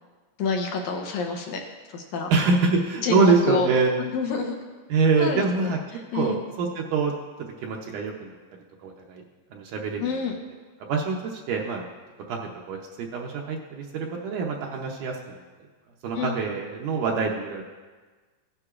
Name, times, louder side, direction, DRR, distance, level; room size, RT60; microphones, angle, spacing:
voice 1, 0.4-2.3 3.0-3.7 4.0-4.6 5.2-6.4 10.0-10.3 16.2-16.3, left 5 dB, 75° left, 2 dB, 1.9 m, -28 dB
voice 2, 2.3-3.9 4.9-5.8 6.1-7.1 7.6-8.4 8.8-9.2 9.5-10.1 10.9-11.9 12.3-15.4 16.0-17.6, right 4 dB, 75° right, 0 dB, 2.1 m, -25 dB
16.0 x 9.8 x 2.4 m, 1.4 s
omnidirectional pair, 3.9 m